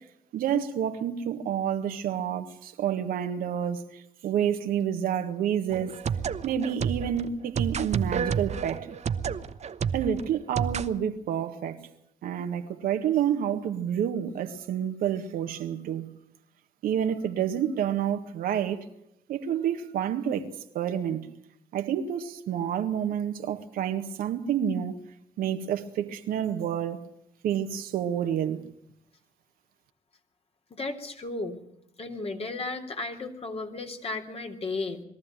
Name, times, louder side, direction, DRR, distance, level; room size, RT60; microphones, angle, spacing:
voice 1, 0.3-6.0 6.4-8.9 9.9-11.8 12.2-16.1 16.8-18.8 19.3-21.3 21.7-25.0 25.4-27.0 27.4-28.7, right 9 dB, 75° right, 1.7 m, -29 dB
sound 1, 5.7-10.9, right 7 dB, 50° right, 1.1 m, -30 dB
voice 2, 30.7-31.6 32.0-35.0, left 3 dB, 40° left, 3.3 m, -34 dB
22.0 x 14.0 x 9.1 m
hypercardioid pair, 55°, 15 cm